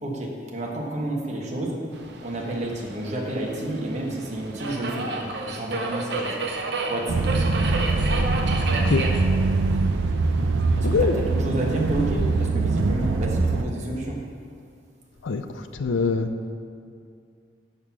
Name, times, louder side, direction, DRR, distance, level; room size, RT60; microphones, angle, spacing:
voice 1, 0.0-1.8 2.2-6.4 6.9-7.3 10.8-14.2, right 1 dB, 40° right, -2 dB, 1.1 m, -30 dB
Subway metro underground, 1.9-12.5, right 3 dB, 60° right, 0.7 m, -33 dB
sound 1, 7.1-13.6, right 3 dB, 90° right, 0.4 m, -23 dB
voice 2, 10.8-11.2 15.2-16.3, left 4 dB, 85° left, 9 dB, 0.5 m, -24 dB
6.5 x 5.5 x 6.0 m, 2.3 s
head